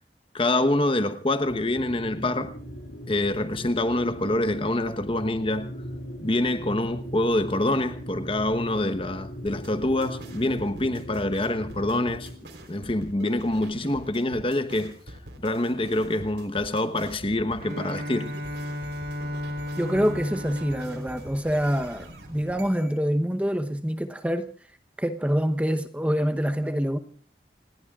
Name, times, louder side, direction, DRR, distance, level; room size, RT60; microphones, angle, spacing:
voice 1, 0.3-2.5 3.1-5.7 6.2-12.3 12.7-14.9 15.4-18.3, left 1 dB, 30° left, 1.0 m, -26 dB
sound 1, 1.4-12.3, equal, 65° left, 6.0 m, -39 dB
sound 2, 9.5-23.0, right 1 dB, 85° right, 3.8 m, -44 dB
Bowed string instrument, 17.6-22.4, left 1 dB, 55° right, 2.2 m, -35 dB
voice 2, 19.8-24.5 25.0-27.0, equal, 10° right, 0.9 m, -26 dB
29.0 x 19.0 x 2.4 m
head